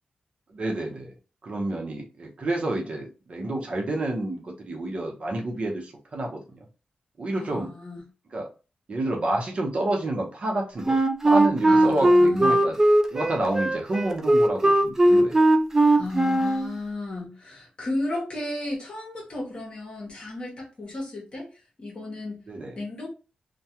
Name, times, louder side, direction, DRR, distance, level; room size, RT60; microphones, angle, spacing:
voice 1, 0.5-1.1 1.4-6.6 7.2-7.7 8.3-8.5 8.9-11.0 11.2-12.8 13.1-15.4 22.5-22.8, right 1 dB, 45° right, 0.8 m, -29 dB
voice 2, 7.3-8.0 11.7-12.6 15.9-21.5 21.8-22.4 22.8-23.1, left 2 dB, 40° left, 0.9 m, -34 dB
Wind instrument woodwind instrument, 10.8-16.7, right 1 dB, 20° right, 0.3 m, -19 dB
2.3 x 2.2 x 2.8 m
wide cardioid pair, 145°, 3 cm